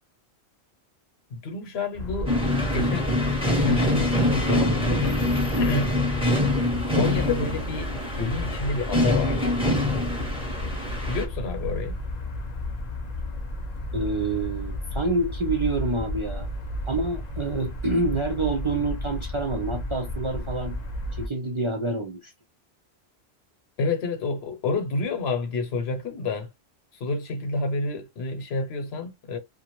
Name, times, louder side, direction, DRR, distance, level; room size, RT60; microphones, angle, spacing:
voice 1, 1.3-2.3 2.7-3.1 3.4-5.2 5.6-5.9 6.9-7.9 8.2-9.5 11.1-11.9 23.8-26.5 27.0-29.4, left 3 dB, 75° left, 1.0 m, -29 dB
sound 1, 1.9-21.3, left 1 dB, 45° left, 0.7 m, -32 dB
sound 2, 2.3-11.2, left 1 dB, 5° right, 0.7 m, -25 dB
voice 2, 13.9-16.5 16.9-20.8 21.1-22.3, right 2 dB, 55° right, 0.3 m, -27 dB
2.4 x 2.1 x 2.9 m
omnidirectional pair, 1.1 m